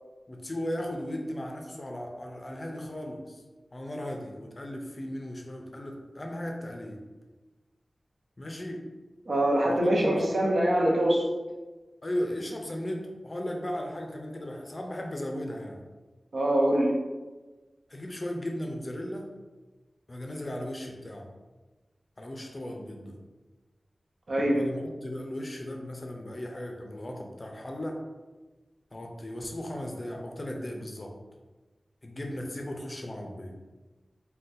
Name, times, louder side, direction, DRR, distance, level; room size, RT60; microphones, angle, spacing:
voice 1, 0.3-3.4 3.7-7.0 8.4-8.9 9.6-10.4 12.0-15.8 17.9-19.3 20.1-21.3 22.2-23.2 24.5-28.0 28.9-31.2 32.0-33.6, left 1 dB, 35° left, 1 dB, 0.4 m, -36 dB
voice 2, 9.3-11.2 16.3-16.9 24.3-24.7, right 1 dB, 65° right, -2 dB, 0.6 m, -24 dB
3.8 x 2.2 x 2.6 m, 1.2 s
wide cardioid pair, 80°, 0 cm